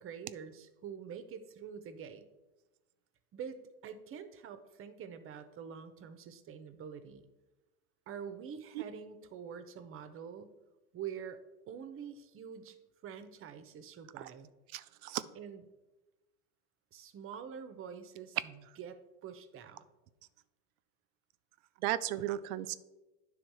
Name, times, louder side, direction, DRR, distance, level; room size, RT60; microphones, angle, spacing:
voice 1, 0.0-2.3 3.3-7.3 8.1-10.6 10.9-11.4 11.7-12.8 13.0-14.5 15.3-15.6 16.9-19.8, right 7 dB, 30° right, 10 dB, 0.7 m, -46 dB
voice 2, 14.7-15.2 21.8-22.7, right 14 dB, 70° right, 14 dB, 0.5 m, -35 dB
10.0 x 3.5 x 4.6 m, 1.1 s
supercardioid pair, 120°, 45 cm